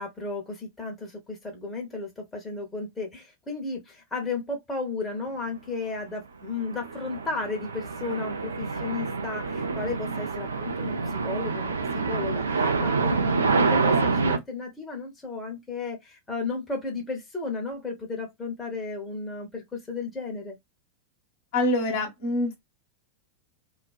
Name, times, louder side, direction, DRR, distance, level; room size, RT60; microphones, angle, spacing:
voice 1, 0.0-20.6, left 3 dB, 15° left, 0.8 m, -34 dB
sound 1, 6.5-14.4, right 4 dB, 70° right, 0.4 m, -27 dB
voice 2, 21.5-22.6, left 1 dB, 50° left, 1.0 m, -25 dB
2.4 x 2.2 x 2.3 m
figure-of-eight pair, 90°, 0 cm